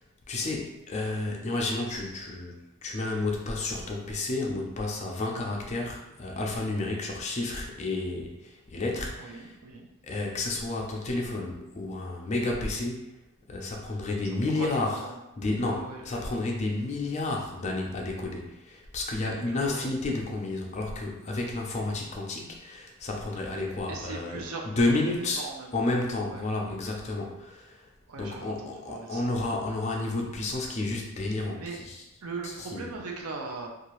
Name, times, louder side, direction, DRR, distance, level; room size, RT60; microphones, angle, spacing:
voice 1, 0.3-9.6 10.0-13.1 13.5-15.0 15.4-27.9 28.2-32.0 32.4-32.9, left 2 dB, 30° left, 0 dB, 0.5 m, -31 dB
voice 2, 9.2-9.9 14.5-15.1 15.6-16.0 19.5-19.9 23.5-24.7 25.2-25.9 26.3-26.4 28.1-29.3 31.6-31.8 32.2-33.7, right 3 dB, 75° right, 1 dB, 0.5 m, -40 dB
2.7 x 2.4 x 3.0 m, 0.92 s
head